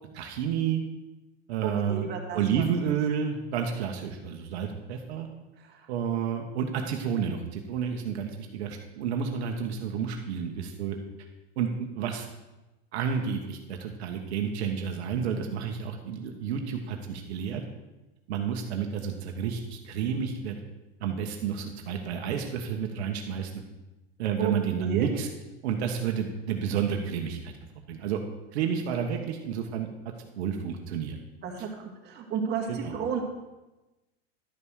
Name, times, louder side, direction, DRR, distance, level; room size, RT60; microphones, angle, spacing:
voice 1, 0.1-0.8 1.5-2.1 2.3-5.3 5.9-11.0 11.6-12.3 12.9-17.6 18.3-20.6 21.0-23.5 24.2-25.3 25.6-27.5 27.9-28.2 28.5-29.9 30.4-31.2 32.7-32.9, right 7 dB, 75° right, 3 dB, 1.4 m, -30 dB
voice 2, 1.6-2.7 5.6-5.9 24.4-25.1 31.4-33.2, right 7 dB, 30° right, 0 dB, 2.1 m, -33 dB
11.5 x 5.7 x 6.4 m, 1.1 s
supercardioid pair, 135°, 33 cm